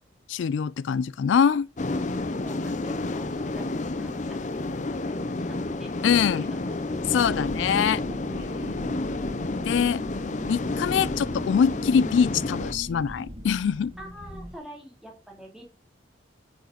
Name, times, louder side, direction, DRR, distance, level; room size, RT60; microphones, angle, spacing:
voice 1, 0.3-1.7 6.0-6.5 7.1-8.0 9.7-10.0 10.5-13.9, left 7 dB, 85° left, 0.3 m, -23 dB
sound 1, 1.8-12.7, left 2 dB, 40° left, 0.6 m, -30 dB
voice 2, 2.2-6.8 8.3-8.8 14.0-15.6, right 1 dB, ahead, 2.7 m, -47 dB
sound 2, 6.9-14.6, equal, 30° right, 1.5 m, -40 dB
8.9 x 5.3 x 4.9 m
head